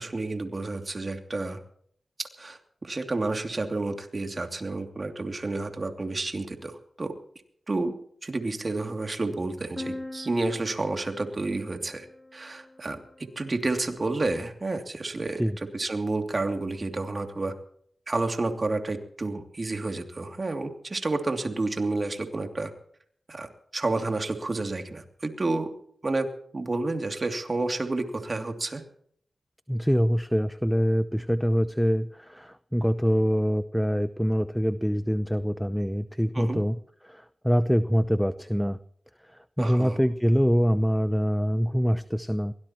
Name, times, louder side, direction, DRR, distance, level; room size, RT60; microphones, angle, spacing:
voice 1, 0.0-1.6 2.2-7.1 7.7-7.9 8.2-12.1 12.3-17.6 18.1-22.7 23.3-23.5 23.7-25.7 26.0-26.3 26.5-28.8 36.3-36.6 39.6-40.0, right 2 dB, 45° right, 5 dB, 2.8 m, -30 dB
sound 1, 9.8-13.5, left 1 dB, 20° left, 5.5 m, -42 dB
voice 2, 29.7-36.8 37.0-38.8 39.6-42.5, equal, ahead, 13 dB, 0.7 m, -24 dB
22.5 x 18.0 x 3.1 m, 0.62 s
cardioid pair, 55°, 0 cm